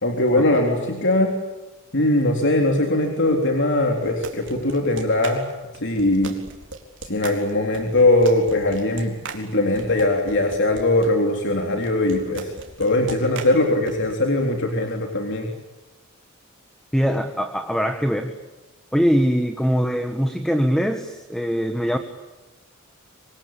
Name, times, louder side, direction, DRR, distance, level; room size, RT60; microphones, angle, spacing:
voice 1, 0.0-1.3 1.9-5.4 5.8-6.4 7.0-15.5, left 1 dB, 60° left, 2 dB, 3.6 m, -21 dB
sound 1, 4.0-11.1 11.8-14.1, right 4 dB, 60° right, 4.2 m, -38 dB
voice 2, 16.9-18.3 18.9-22.0, equal, ahead, 7 dB, 1.7 m, -22 dB
26.0 x 25.5 x 8.7 m, 1.1 s
head